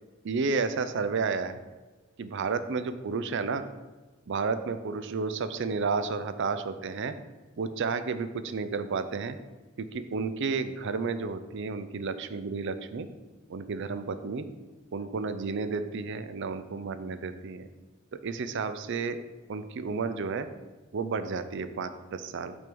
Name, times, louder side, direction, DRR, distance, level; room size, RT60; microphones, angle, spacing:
voice 1, 0.2-1.6 2.2-3.6 4.3-7.1 7.6-9.4 9.8-13.1 13.5-14.5 14.9-17.7 18.1-19.2 19.5-20.5 20.9-22.5, right 4 dB, 60° right, 11 dB, 0.5 m, -31 dB
6.1 x 3.6 x 6.0 m, 1.2 s
head